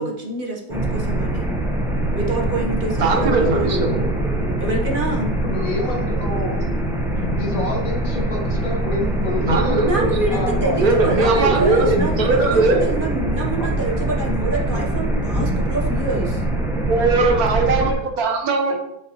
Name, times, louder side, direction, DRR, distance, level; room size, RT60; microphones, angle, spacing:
voice 1, 0.0-1.5 2.1-3.7 4.6-5.3 9.8-16.4, right 2 dB, 35° right, -1 dB, 1.1 m, -26 dB
sound 1, 0.7-17.9, right 1 dB, ahead, 0.8 m, -23 dB
voice 2, 2.9-4.1 9.4-10.1 10.8-12.9 16.9-18.8, right 3 dB, 65° right, 4 dB, 1.4 m, -19 dB
voice 3, 3.4-4.0 5.4-6.6 7.1-9.9 10.3-11.1 13.6-13.7 14.7-14.8 15.1-15.2, left 2 dB, 55° left, -1 dB, 2.1 m, -28 dB
9.8 x 5.4 x 3.0 m, 0.82 s
omnidirectional pair, 1.8 m